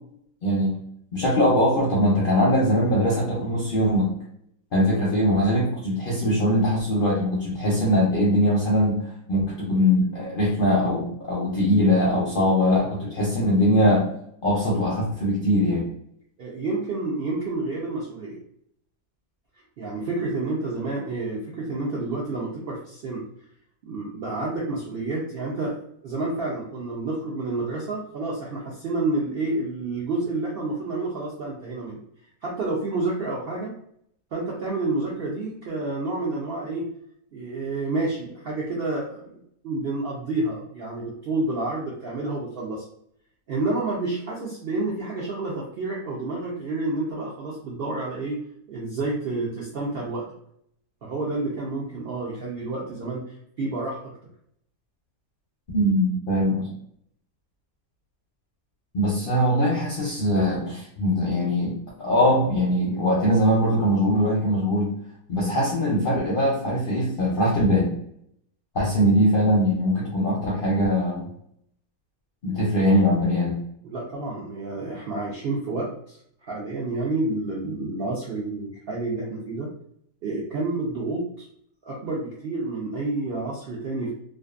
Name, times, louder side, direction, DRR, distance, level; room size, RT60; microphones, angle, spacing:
voice 1, 1.1-4.1 4.7-9.0 9.3-14.1 14.4-15.9 55.7-56.7 58.9-64.9 65.3-67.9 68.7-71.3 72.4-73.6, equal, 55° left, -5 dB, 0.6 m, -21 dB
voice 2, 16.4-18.4 19.8-23.2 23.8-32.0 32.4-33.7 34.3-36.9 37.3-39.4 39.6-42.8 43.5-48.4 48.7-50.2 51.0-54.1 73.8-76.2 76.5-79.7 80.2-81.5 81.8-84.1, right 2 dB, 65° right, -4 dB, 0.5 m, -29 dB
2.5 x 2.3 x 2.4 m, 0.69 s
omnidirectional pair, 1.6 m